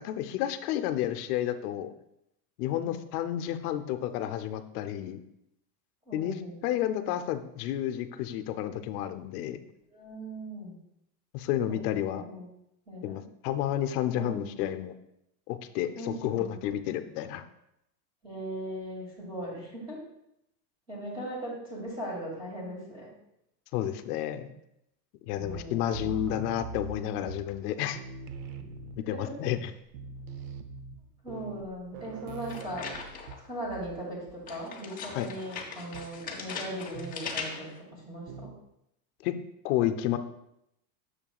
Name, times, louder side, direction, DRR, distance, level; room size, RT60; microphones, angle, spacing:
voice 1, 0.0-1.9 2.6-5.2 6.1-6.3 6.6-9.6 11.3-12.2 13.0-14.9 15.5-17.4 23.7-24.5 25.2-28.0 29.1-29.7 35.1-35.3 39.2-39.4 39.6-40.2, left 11 dB, 65° left, 9 dB, 0.7 m, -31 dB
voice 2, 2.7-3.0 6.1-6.8 9.9-10.8 11.7-11.8 12.1-12.5 12.9-13.2 14.1-14.6 16.0-16.6 18.2-20.0 20.9-23.1 25.4-26.1 29.1-29.5 31.2-32.9 33.4-38.5, right 1 dB, 10° right, -4 dB, 2.3 m, -39 dB
sound 1, 25.3-27.7 27.9-29.3 29.6-29.7 29.9-34.0 34.3-34.6 35.9-36.2 36.9-37.3 38.3-38.7, right 4 dB, 60° right, 0.7 m, -43 dB
sound 2, 32.5-33.5 34.5-37.8, left 5 dB, 15° left, 0.7 m, -39 dB
8.8 x 6.6 x 2.3 m, 0.80 s
supercardioid pair, 160°, 49 cm